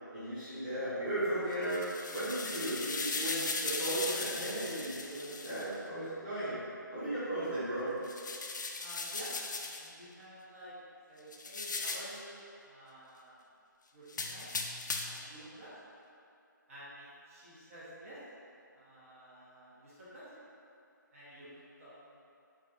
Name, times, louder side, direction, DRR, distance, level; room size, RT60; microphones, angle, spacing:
voice 1, 0.1-1.8 2.1-6.6 6.9-7.9, right 1 dB, 15° right, -18 dB, 1.2 m, -36 dB
sound 1, 1.5-5.7 8.0-9.9 11.3-12.2 14.1-15.3, left 3 dB, 65° left, 0.4 m, -38 dB
voice 2, 8.8-10.7 11.1-13.4 13.9-14.5 15.0-15.7 16.7-18.2 18.7-20.4 21.1-21.9, equal, 40° right, -10 dB, 0.9 m, -51 dB
4.8 x 2.8 x 2.4 m, 2.6 s
figure-of-eight pair, 150°, 11 cm